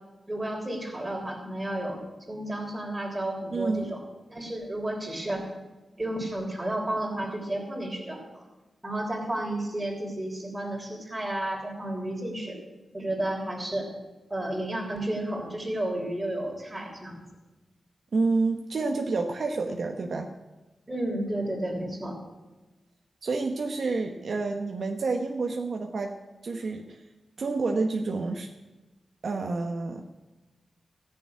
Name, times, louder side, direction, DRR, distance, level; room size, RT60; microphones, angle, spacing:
voice 1, 0.3-2.0 2.3-4.0 4.3-5.4 6.0-8.4 8.8-12.6 12.9-13.9 14.3-17.2 20.9-22.2, right 1 dB, 20° right, 1 dB, 3.3 m, -32 dB
voice 2, 3.5-3.9 18.1-20.3 23.2-26.1 26.4-27.0 27.4-28.5 29.2-30.1, right 3 dB, 60° right, 3 dB, 1.0 m, -29 dB
14.5 x 7.0 x 9.5 m, 1.1 s
wide cardioid pair, 120°, 0 cm